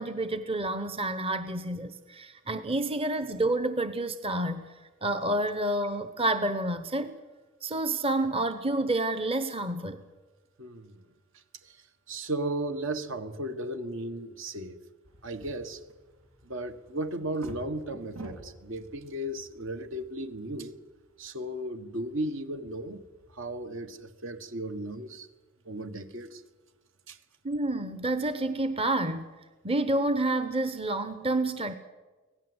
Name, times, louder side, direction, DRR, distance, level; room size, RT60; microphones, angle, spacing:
voice 1, 0.0-4.6 5.0-7.1 7.6-10.0 27.4-29.3 29.6-31.7, right 2 dB, 30° right, 10 dB, 1.0 m, -29 dB
voice 2, 10.6-10.9 12.1-14.8 15.2-15.8 16.5-20.7 21.2-23.0 23.4-25.3 25.7-26.4 27.1-27.2, right 1 dB, 65° right, 9 dB, 1.6 m, -35 dB
sound 1, 15.0-23.7, right 1 dB, 85° right, 3.2 m, -50 dB
25.0 x 17.5 x 8.0 m, 1.3 s
head